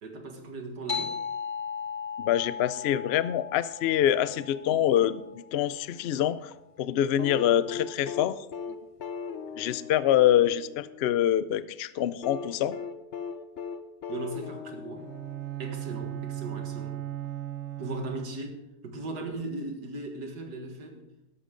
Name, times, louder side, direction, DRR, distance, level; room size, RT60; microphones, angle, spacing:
voice 1, 0.0-1.2 4.7-4.8 14.1-15.1 15.6-17.0 17.8-18.6 18.8-21.1, right 2 dB, 80° right, 4 dB, 2.3 m, -38 dB
sound 1, 0.9-5.9, left 6 dB, 30° left, 0.7 m, -37 dB
voice 2, 2.2-6.5 6.8-8.4 9.6-12.8, left 11 dB, 85° left, 15 dB, 0.5 m, -25 dB
sound 2, 7.2-11.3 12.2-15.8 17.2-17.3, left 6 dB, 55° left, 0.9 m, -39 dB
Bowed string instrument, 15.0-18.7, right 13 dB, 55° right, 1.2 m, -37 dB
12.5 x 12.5 x 3.8 m, 0.88 s
omnidirectional pair, 1.7 m